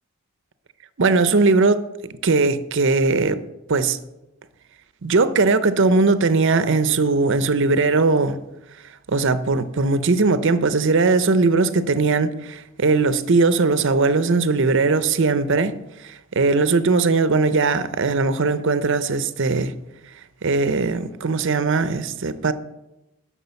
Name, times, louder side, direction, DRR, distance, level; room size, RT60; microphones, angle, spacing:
voice 1, 1.0-1.9 2.2-3.4 3.7-4.0 5.0-8.4 9.1-15.8 16.1-19.7 20.4-22.5, right 3 dB, 55° right, 0.6 m, -19 dB
10.5 x 6.0 x 6.9 m
head